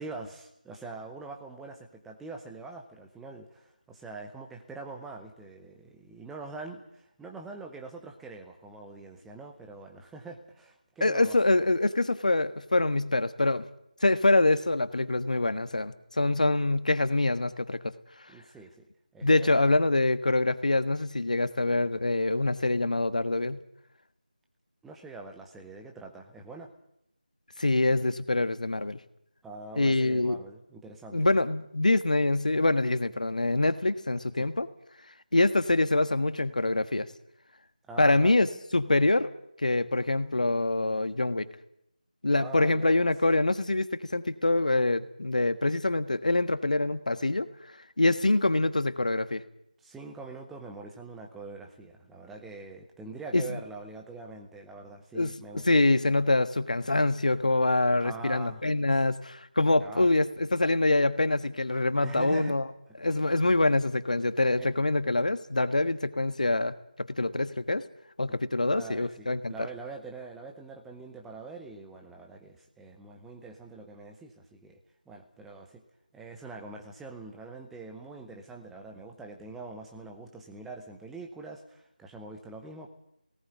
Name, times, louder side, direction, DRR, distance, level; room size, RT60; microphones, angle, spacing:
voice 1, 0.0-11.4 18.3-19.7 24.8-26.7 29.4-31.3 34.4-34.5 37.9-38.4 42.3-43.1 49.8-55.8 58.0-58.6 59.8-60.1 62.0-62.6 63.1-63.2 64.6-64.7 68.6-74.8 75.1-75.8 76.1-82.9, right 3 dB, 5° right, 3 dB, 0.8 m, -44 dB
voice 2, 11.0-13.7 14.0-17.9 19.2-23.6 27.6-29.0 29.8-30.4 31.1-34.7 35.3-37.1 38.0-39.3 39.6-41.5 42.2-47.5 48.0-49.4 53.3-53.4 55.1-55.4 55.6-62.6 63.0-67.8 68.2-69.7, left 2 dB, 60° left, 12 dB, 1.4 m, -25 dB
18.0 x 17.0 x 9.3 m, 0.77 s
figure-of-eight pair, 170°, 5 cm